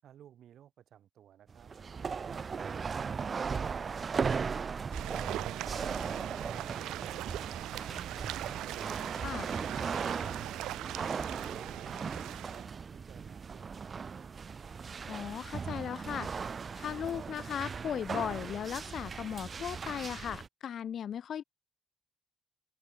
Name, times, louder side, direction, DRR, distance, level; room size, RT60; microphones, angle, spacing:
voice 1, 0.0-3.1 3.6-5.1 5.5-8.2 11.1-13.9, right 10 dB, 70° right, 7.6 m, -57 dB
sound 1, 1.5-20.5, right 5 dB, 40° right, 1.4 m, -38 dB
sound 2, 4.9-12.6, right 14 dB, 85° right, 0.5 m, -40 dB
voice 2, 15.1-16.3 16.8-21.4, left 9 dB, 60° left, 0.8 m, -37 dB
open air
cardioid pair, 90°, 0 cm